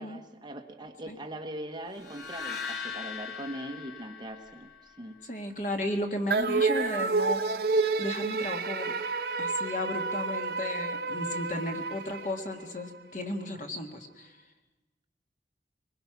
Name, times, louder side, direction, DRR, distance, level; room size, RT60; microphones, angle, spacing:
voice 1, 0.0-5.2, right 1 dB, 25° right, 5 dB, 1.2 m, -41 dB
sound 1, 2.0-5.2, left 6 dB, 80° left, 2.3 m, -40 dB
voice 2, 5.2-7.4 8.0-8.9 9.4-14.4, left 1 dB, 45° left, 4 dB, 1.8 m, -34 dB
sound 2, 6.3-12.9, right 4 dB, 60° right, 1.0 m, -29 dB
23.0 x 20.5 x 6.0 m, 1.1 s
head